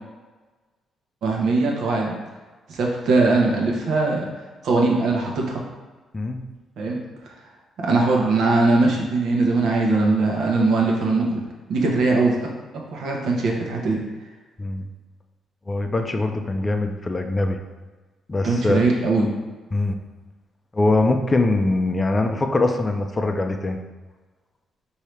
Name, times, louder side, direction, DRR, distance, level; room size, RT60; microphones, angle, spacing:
voice 1, 1.2-2.1 2.7-4.3 4.6-5.6 6.8-7.0 7.8-11.4 11.7-12.5 12.9-14.0 18.4-19.3, right 3 dB, 70° right, -1 dB, 0.9 m, -20 dB
voice 2, 15.7-17.6 18.3-18.8 19.7-20.0 20.7-23.8, left 2 dB, 25° left, 5 dB, 0.4 m, -22 dB
4.6 x 2.8 x 3.2 m, 1.3 s
cardioid pair, 90°, 0 cm